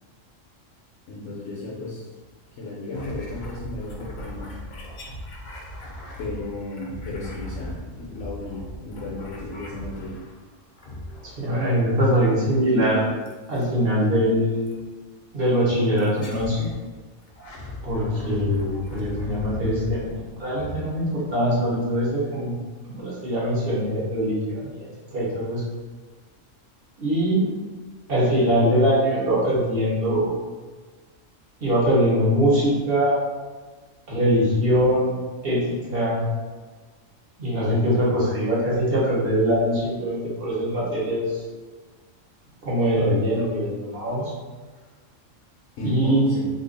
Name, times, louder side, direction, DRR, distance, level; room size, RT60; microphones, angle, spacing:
voice 1, 1.1-2.1 2.6-4.6 6.2-10.2 45.8-46.5, left 1 dB, 70° left, -5 dB, 0.9 m, -33 dB
sound 1, 2.9-10.4 10.8-11.6 13.3-13.7 14.7-14.8 16.0-16.8 17.2-21.6, left 1 dB, 55° left, 0.5 m, -38 dB
voice 2, 11.2-13.1 13.5-14.8 15.3-16.7 17.8-20.1 20.4-22.5 22.9-24.9 25.1-25.6 27.0-27.5 28.1-30.4 31.6-33.2 34.1-35.1 35.4-36.2 37.4-41.4 42.6-44.3 45.8-46.4, equal, 50° right, -7 dB, 1.2 m, -22 dB
2.9 x 2.4 x 3.8 m, 1.3 s
omnidirectional pair, 1.4 m